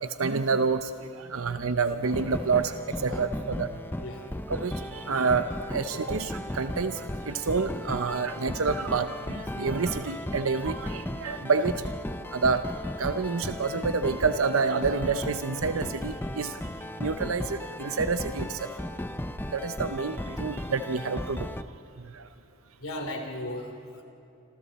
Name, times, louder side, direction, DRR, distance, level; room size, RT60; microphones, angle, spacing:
voice 1, 0.0-3.7 4.5-11.9 12.2-12.6 13.0-16.6 17.0-18.7 19.5-21.5 22.0-22.3, right 4 dB, 75° right, 10 dB, 0.7 m, -28 dB
sound 1, 2.0-21.6, left 1 dB, 10° left, 0.6 m, -36 dB
voice 2, 22.8-24.0, left 1 dB, 80° left, 3 dB, 3.3 m, -36 dB
27.5 x 27.0 x 4.2 m, 2.8 s
head